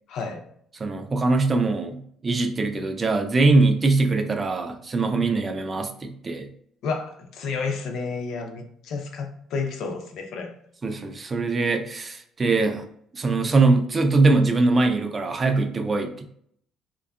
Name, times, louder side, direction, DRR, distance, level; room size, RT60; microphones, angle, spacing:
voice 1, 0.1-0.4 6.8-10.5, left 4 dB, 65° left, 4 dB, 0.4 m, -31 dB
voice 2, 0.8-6.5 10.8-12.8 13.1-16.3, right 3 dB, 25° right, 5 dB, 0.3 m, -22 dB
2.6 x 2.2 x 2.3 m, 0.65 s
cardioid pair, 125°, 0 cm